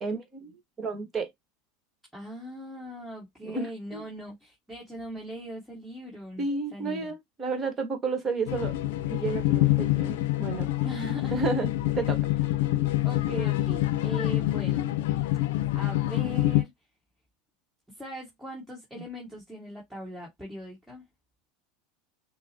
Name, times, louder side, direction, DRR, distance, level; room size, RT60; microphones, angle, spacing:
voice 1, 0.0-1.3 3.4-4.0 6.4-8.7 9.1-10.7 11.3-11.7 11.9-12.2 12.6-12.9 19.0-19.1, right 4 dB, 25° right, 1.3 m, -32 dB
voice 2, 2.1-7.1 10.8-11.4 13.0-14.9 15.7-16.7 18.0-21.0, equal, 5° right, 1.8 m, -40 dB
sound 1, 8.5-16.6, left 15 dB, 80° left, 0.5 m, -26 dB
6.1 x 2.1 x 2.8 m
supercardioid pair, 125°, 0 cm